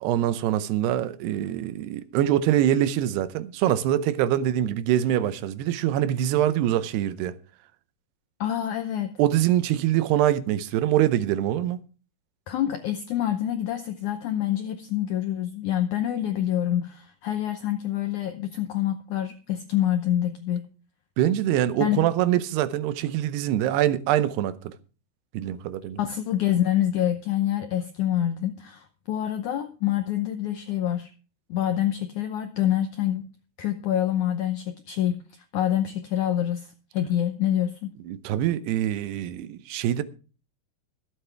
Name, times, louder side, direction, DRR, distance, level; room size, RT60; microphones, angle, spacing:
voice 1, 0.0-7.4 9.2-11.8 21.2-24.7 25.3-26.0 38.0-40.0, right 12 dB, 90° right, 2.9 m, -24 dB
voice 2, 8.4-9.1 12.5-20.7 21.8-22.1 26.0-31.1 31.5-33.3 33.6-37.9, left 11 dB, 80° left, 1.8 m, -26 dB
23.5 x 8.2 x 3.4 m
omnidirectional pair, 4.6 m